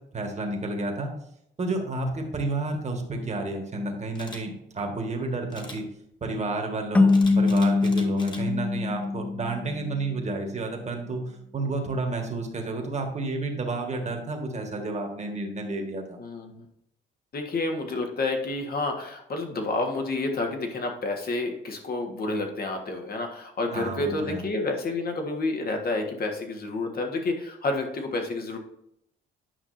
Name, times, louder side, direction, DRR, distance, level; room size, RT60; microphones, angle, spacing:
voice 1, 0.1-1.1 1.6-5.8 6.2-11.2 11.5-16.2 23.7-24.4, right 2 dB, 35° right, 2 dB, 1.7 m, -30 dB
Camera, 4.1-4.4 5.5-5.8 7.1-8.4 8.9-9.2, left 1 dB, 20° left, 1.5 m, -42 dB
sound 1, 6.9-10.1, left 3 dB, 5° left, 0.3 m, -23 dB
voice 2, 16.2-16.6 17.3-28.6, left 2 dB, 50° left, 3 dB, 1.6 m, -29 dB
9.6 x 5.5 x 2.7 m, 0.76 s
cardioid pair, 90°, 20 cm